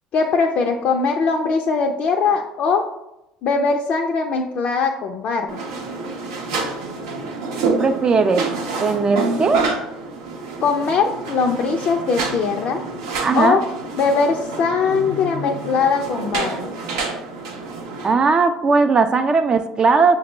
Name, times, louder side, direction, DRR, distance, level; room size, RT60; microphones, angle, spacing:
voice 1, 0.1-2.8 3.4-5.6 10.6-12.8 13.4-13.6 14.0-16.7, left 5 dB, 55° left, 2 dB, 0.4 m, -20 dB
sound 1, 5.5-18.1, right 3 dB, 85° right, 0.7 m, -28 dB
voice 2, 7.6-8.5 8.8-9.6 13.2-13.6 18.0-20.2, right 4 dB, 35° right, 8 dB, 0.3 m, -18 dB
5.8 x 2.0 x 3.1 m, 0.89 s
hypercardioid pair, 70°, 3 cm